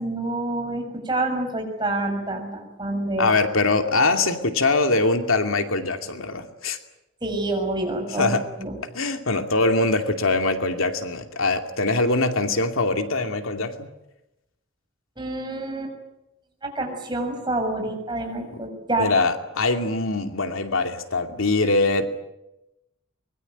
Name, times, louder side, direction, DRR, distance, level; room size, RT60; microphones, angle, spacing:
voice 1, 0.0-3.3 7.2-8.7 15.2-15.9 16.6-19.1, right 2 dB, 20° right, 3 dB, 6.7 m, -27 dB
voice 2, 3.2-6.8 8.2-8.4 8.9-13.9 19.0-22.1, left 3 dB, 85° left, 6 dB, 2.5 m, -22 dB
24.5 x 22.0 x 9.3 m, 0.91 s
head